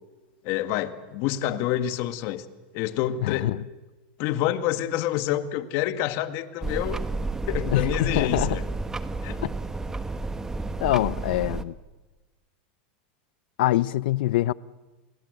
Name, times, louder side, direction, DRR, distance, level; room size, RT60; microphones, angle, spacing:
voice 1, 0.4-2.5 2.7-3.5 4.2-7.0 7.5-8.6 9.2-9.4, left 12 dB, 55° left, 1.9 m, -27 dB
voice 2, 3.2-3.6 7.7-8.6 9.4-9.5 10.8-11.7 13.6-14.5, left 15 dB, 70° left, 0.7 m, -24 dB
sound 1, 6.6-11.6, right 3 dB, 10° right, 1.4 m, -31 dB
29.5 x 21.0 x 8.0 m
supercardioid pair, 125°, 5 cm